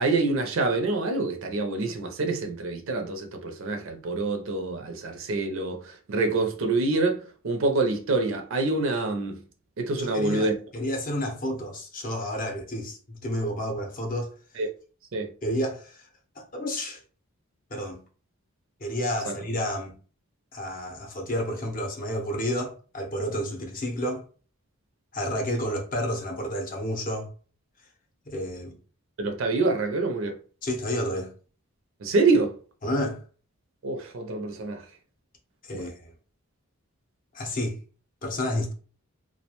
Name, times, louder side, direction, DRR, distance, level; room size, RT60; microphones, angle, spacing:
voice 1, 0.0-9.4 9.8-10.6 14.6-14.7 15.1-15.3 29.2-30.4 32.0-32.5 33.8-34.8 35.7-35.9, right 3 dB, 60° right, 0.5 m, -26 dB
voice 2, 10.0-14.3 15.4-16.1 16.4-17.0 17.7-18.0 18.8-20.0 20.5-24.2 25.1-27.3 28.3-28.7 30.6-31.3 32.8-33.2 35.6-36.1 37.3-37.8 38.2-38.7, equal, 40° left, 0.6 m, -30 dB
2.3 x 2.1 x 2.9 m
head